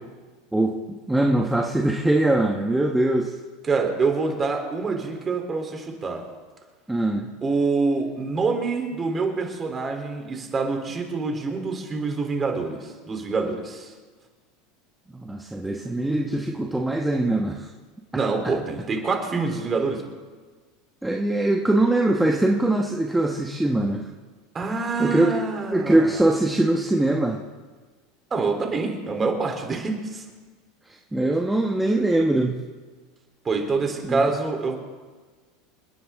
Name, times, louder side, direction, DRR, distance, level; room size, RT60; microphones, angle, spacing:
voice 1, 0.5-3.3 6.9-7.3 15.1-17.7 21.0-24.1 25.0-25.4 25.7-27.4 30.9-32.6 34.0-34.3, right 1 dB, 5° right, 1 dB, 1.3 m, -22 dB
voice 2, 3.7-6.2 7.4-13.9 18.1-20.0 24.5-26.2 28.3-30.2 33.5-34.7, right 4 dB, 25° right, 3 dB, 3.4 m, -26 dB
29.5 x 10.0 x 3.7 m, 1.4 s
supercardioid pair, 115°, 0 cm